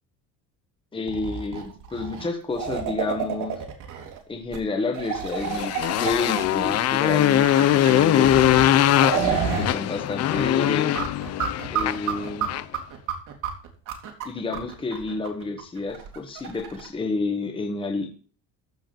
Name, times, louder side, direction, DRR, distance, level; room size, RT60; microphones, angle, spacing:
voice 1, 0.9-3.6 4.3-8.5 9.1-10.9 11.7-12.5 14.2-18.1, left 3 dB, 15° left, 4 dB, 1.5 m, -30 dB
sound 1, 1.1-4.2 4.5-4.6 4.9-9.7 10.0-10.1 10.3-16.9, right 7 dB, 60° right, 2.9 m, -30 dB
Motorcycle, 5.4-12.8, left 12 dB, 45° left, 0.6 m, -21 dB
14.5 x 5.0 x 7.6 m, 0.41 s
cardioid pair, 160°, 36 cm